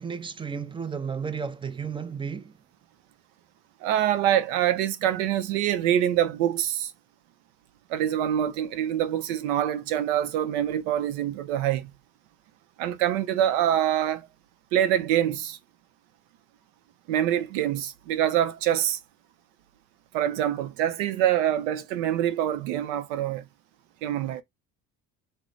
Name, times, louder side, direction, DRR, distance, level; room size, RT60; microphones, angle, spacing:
voice 1, 0.0-2.5, right 6 dB, 15° right, 0.4 m, -33 dB
voice 2, 3.8-6.9 7.9-11.9 12.8-14.3 14.7-15.6 17.1-19.0 20.1-23.4 24.0-24.4, right 11 dB, 85° right, 0.6 m, -25 dB
3.1 x 2.1 x 3.8 m
supercardioid pair, 85°, 35 cm